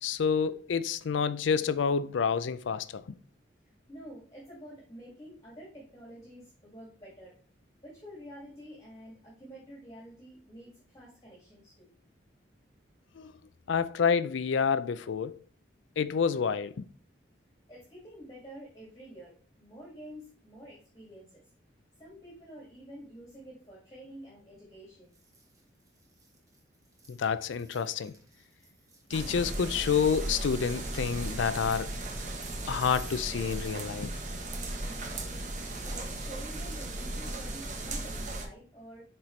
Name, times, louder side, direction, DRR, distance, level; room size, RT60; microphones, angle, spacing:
voice 1, 0.0-3.2 13.2-13.3 13.7-15.4 16.0-16.8 27.1-28.1 29.1-31.9 32.7-34.1, left 6 dB, 80° left, 0.4 m, -28 dB
voice 2, 3.9-7.3 7.8-11.9 17.7-21.4 22.0-25.1 34.8-35.5 35.8-39.0, right 1 dB, 20° left, 2.1 m, -49 dB
sound 1, 25.1-33.9 34.3-34.4, right 2 dB, 15° right, 1.2 m, -56 dB
sound 2, 29.1-38.5, right 2 dB, 40° right, 1.1 m, -36 dB
7.8 x 4.4 x 3.2 m
head